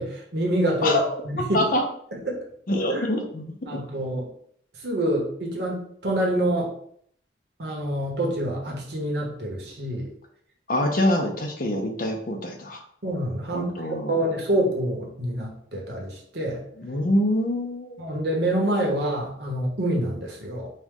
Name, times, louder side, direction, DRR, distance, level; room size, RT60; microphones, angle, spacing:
voice 1, 0.0-1.0 1.2-1.6 2.1-2.4 2.9-3.0 3.7-4.3 4.8-6.7 7.6-10.1 13.0-13.7 14.1-16.6 18.0-20.7, right 1 dB, 60° right, -1 dB, 1.1 m, -26 dB
voice 2, 0.8-1.2 1.5-1.8 2.7-3.9 10.7-12.8 13.5-14.2 16.8-18.0, left 1 dB, 50° left, 3 dB, 0.7 m, -25 dB
4.5 x 2.3 x 3.6 m, 0.65 s
head